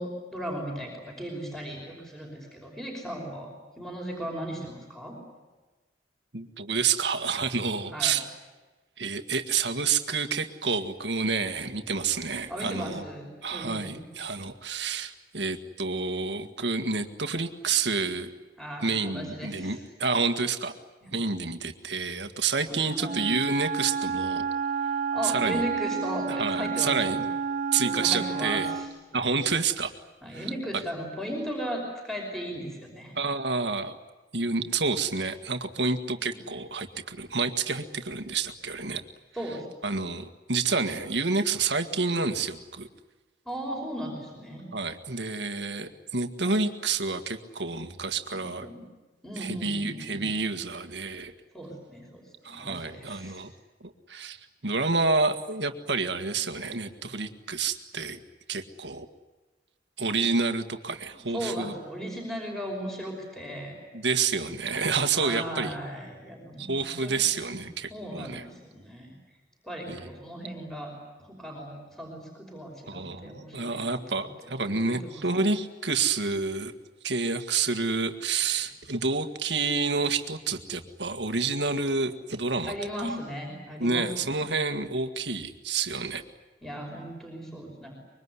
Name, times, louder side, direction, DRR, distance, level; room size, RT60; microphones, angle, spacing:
voice 1, 0.0-3.5 3.7-5.1 7.9-8.2 12.5-14.0 18.6-19.8 21.0-21.1 22.7-23.2 25.1-27.2 27.8-28.9 30.2-33.1 36.3-36.4 39.3-39.7 43.5-44.7 48.3-48.8 49.2-50.3 51.5-53.4 61.3-63.7 65.1-67.3 67.9-69.1 69.6-70.9 71.2-74.2 74.6-75.4 82.7-84.4 86.6-87.9, equal, ahead, 0 dB, 5.7 m, -37 dB
voice 2, 6.3-8.2 9.0-13.0 13.4-18.3 18.8-20.7 21.1-24.5 25.2-25.6 26.3-27.2 27.7-28.7 29.1-29.9 30.3-30.5 33.2-34.0 34.3-39.0 39.8-42.9 44.7-48.7 49.4-51.3 52.4-53.5 53.8-54.4 54.6-58.2 58.5-59.1 60.0-61.7 63.9-65.8 66.6-68.4 69.9-70.1 72.9-76.7 77.0-82.7 83.0-83.1 83.8-86.2, right 4 dB, 70° right, 8 dB, 1.8 m, -29 dB
Wind instrument woodwind instrument, 23.0-29.0, right 6 dB, 45° right, 1.1 m, -30 dB
25.0 x 23.0 x 9.8 m, 1.2 s
head